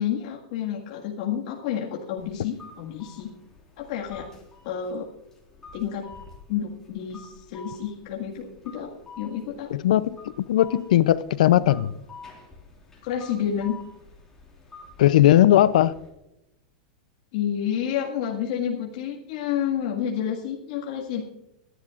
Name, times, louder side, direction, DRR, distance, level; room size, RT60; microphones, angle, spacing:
voice 1, 0.0-3.3 3.8-4.3 4.6-5.1 5.7-6.1 6.5-8.9 9.2-9.7 13.0-13.8 17.3-21.2, left 9 dB, 60° left, 1.9 m, -29 dB
sound 1, 2.2-16.1, left 4 dB, 15° left, 4.1 m, -49 dB
voice 2, 9.7-11.9 15.0-15.9, left 13 dB, 80° left, 0.5 m, -18 dB
24.0 x 11.0 x 2.5 m
supercardioid pair, 140°, 4 cm